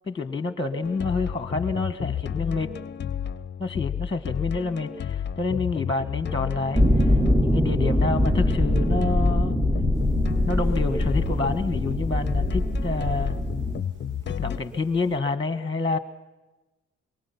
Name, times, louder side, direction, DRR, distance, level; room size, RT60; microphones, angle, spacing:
voice 1, 0.1-2.7 3.6-6.8 7.4-9.5 10.5-13.4 14.4-16.0, left 3 dB, 15° left, 12 dB, 1.3 m, -28 dB
sound 1, 0.8-14.6, left 8 dB, 35° left, 0.7 m, -31 dB
sound 2, 6.7-13.8, equal, 5° right, 0.7 m, -23 dB
sound 3, 9.9-15.2, right 4 dB, 90° right, 1.2 m, -45 dB
25.5 x 23.0 x 5.8 m, 1.1 s
cardioid pair, 90°, 30 cm